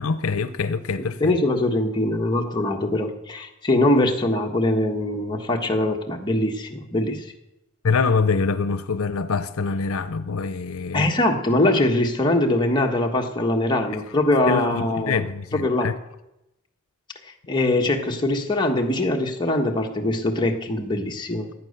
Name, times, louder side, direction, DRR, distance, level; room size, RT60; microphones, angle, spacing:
voice 1, 0.0-1.3 7.8-11.1 14.5-15.9, left 4 dB, 80° left, 0.7 m, -24 dB
voice 2, 1.2-7.3 10.9-15.2 15.5-15.9 17.5-21.5, left 1 dB, 20° left, 1.4 m, -22 dB
15.0 x 9.7 x 6.7 m
head